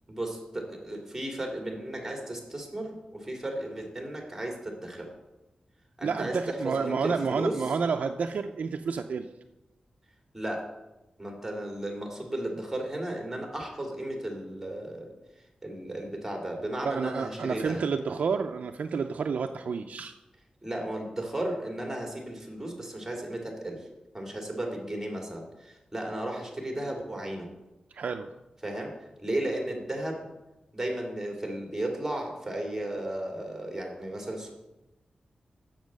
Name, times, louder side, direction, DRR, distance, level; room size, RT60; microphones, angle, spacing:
voice 1, 0.1-5.1 6.0-7.6 10.3-10.7 11.2-15.1 15.6-17.9 20.6-23.8 24.1-27.5 28.6-28.9 29.2-30.3 30.7-34.5, right 1 dB, 10° right, 1 dB, 2.5 m, -34 dB
voice 2, 6.0-9.3 16.8-20.1 27.9-28.3, right 5 dB, 75° right, 4 dB, 0.4 m, -30 dB
7.3 x 7.1 x 6.3 m, 0.99 s
wide cardioid pair, 90°, 3 cm